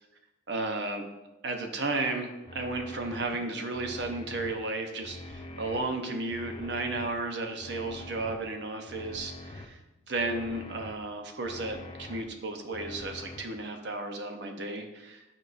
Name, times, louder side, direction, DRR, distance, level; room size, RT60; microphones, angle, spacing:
voice 1, 0.5-1.1 1.4-9.8 10.1-15.2, right 2 dB, 60° right, 4 dB, 0.8 m, -33 dB
sound 1, 2.5-3.2 3.7-4.5 5.0-5.8 6.3-7.1 7.6-8.4 8.9-9.7 10.2-10.9 11.4-12.2 12.7-13.4, left 2 dB, 25° left, 0.5 m, -44 dB
9.0 x 4.7 x 2.6 m, 1.0 s
head